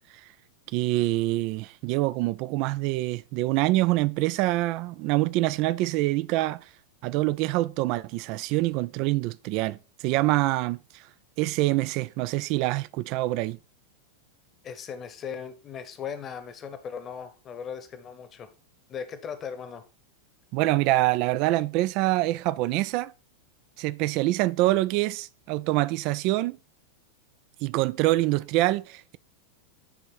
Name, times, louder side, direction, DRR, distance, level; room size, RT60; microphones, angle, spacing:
voice 1, 0.7-6.7 7.0-11.1 11.4-13.6 20.5-23.1 23.8-26.6 27.6-29.2, right 18 dB, 45° right, 0.3 m, -25 dB
voice 2, 14.6-18.5 18.9-19.8, left 7 dB, 25° left, 1.0 m, -38 dB
10.0 x 3.5 x 4.4 m
figure-of-eight pair, 90°, 0 cm